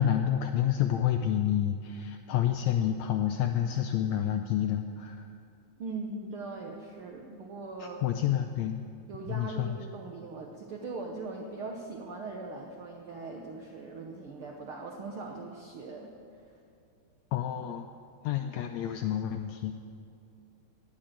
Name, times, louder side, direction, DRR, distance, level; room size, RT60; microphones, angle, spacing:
voice 1, 0.0-5.3 7.8-8.8 9.3-9.8 17.3-17.9 18.2-19.7, left 10 dB, 85° left, 6 dB, 1.6 m, -29 dB
voice 2, 5.8-8.2 9.1-16.1, right 3 dB, 75° right, 1 dB, 1.2 m, -40 dB
19.0 x 6.5 x 8.8 m, 2.5 s
omnidirectional pair, 3.7 m